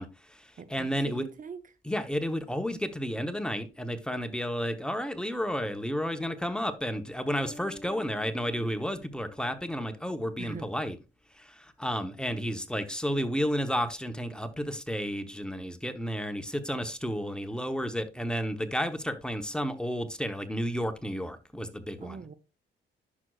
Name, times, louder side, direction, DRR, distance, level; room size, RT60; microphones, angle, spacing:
voice 1, 0.0-1.2 1.8-11.0 11.4-22.2, equal, 5° left, 0.9 m, -32 dB
voice 2, 0.6-1.6 10.4-10.7 22.0-22.3, right 6 dB, 40° right, 0.7 m, -42 dB
sound 1, 7.3-10.6, left 1 dB, 50° left, 1.6 m, -50 dB
10.5 x 6.2 x 2.4 m
cardioid pair, 90°, 20 cm